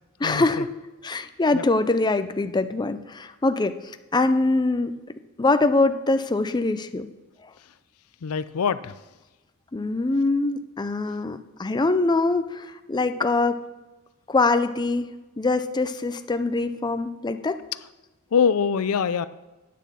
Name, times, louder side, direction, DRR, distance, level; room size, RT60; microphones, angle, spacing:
voice 1, 0.2-0.7 1.0-3.8 4.1-4.9 5.4-7.1 9.7-13.6 14.3-15.1 15.4-17.6, left 3 dB, 20° left, 10 dB, 0.5 m, -23 dB
voice 2, 8.2-8.9 18.3-19.3, left 6 dB, 70° left, 15 dB, 0.5 m, -23 dB
9.4 x 7.3 x 6.9 m, 1.1 s
head